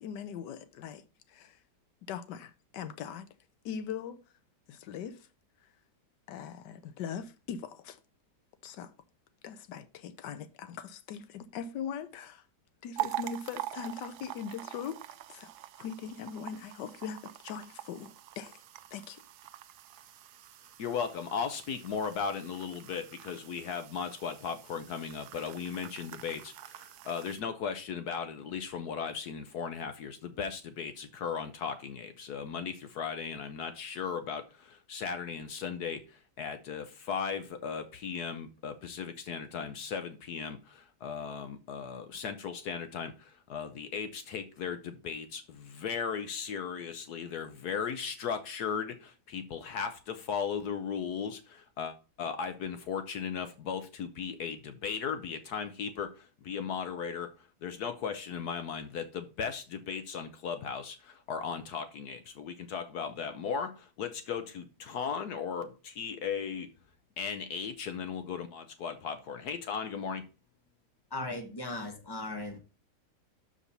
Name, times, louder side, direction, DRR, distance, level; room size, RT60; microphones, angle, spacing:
voice 1, 0.0-1.6 2.1-3.3 3.6-4.2 4.7-5.3 6.3-8.0 8.6-8.9 9.4-12.4 12.8-15.0 15.3-15.5 15.8-18.6 18.9-19.2, left 7 dB, 85° left, 1.4 m, -40 dB
sound 1, 13.0-27.4, right 14 dB, 75° right, 1.1 m, -44 dB
voice 2, 20.8-66.7 67.2-70.3, left 6 dB, 70° left, 1.3 m, -37 dB
voice 3, 71.1-72.6, left 2 dB, 15° left, 1.4 m, -37 dB
6.7 x 5.0 x 5.6 m
omnidirectional pair, 1.8 m